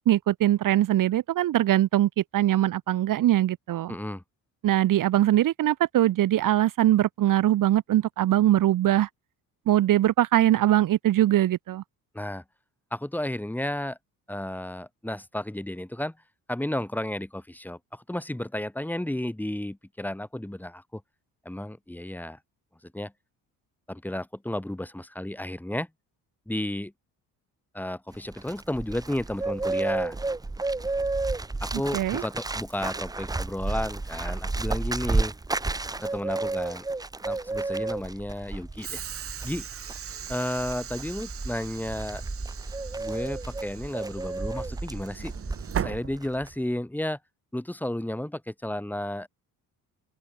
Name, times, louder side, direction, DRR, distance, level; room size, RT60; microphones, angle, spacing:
voice 1, 0.0-3.9 4.6-9.1 9.7-11.8 31.9-32.2, right 13 dB, 60° right, 1.4 m, -22 dB
voice 2, 3.9-4.2 12.1-12.4 12.9-14.0 14.3-16.1 16.5-21.0 21.4-22.4 22.8-23.1 23.9-25.9 26.5-26.9 27.7-30.2 31.6-35.3 36.0-36.8 37.2-39.0 39.4-39.7 40.3-42.2 43.0-45.3 45.8-47.2 47.5-49.3, left 1 dB, 5° left, 5.8 m, -32 dB
Bird, 28.1-46.0 46.2-46.5, right 3 dB, 10° right, 0.9 m, -32 dB
Train / Sliding door, 38.8-46.8, right 9 dB, 40° right, 1.2 m, -38 dB
cardioid pair, 135°, 36 cm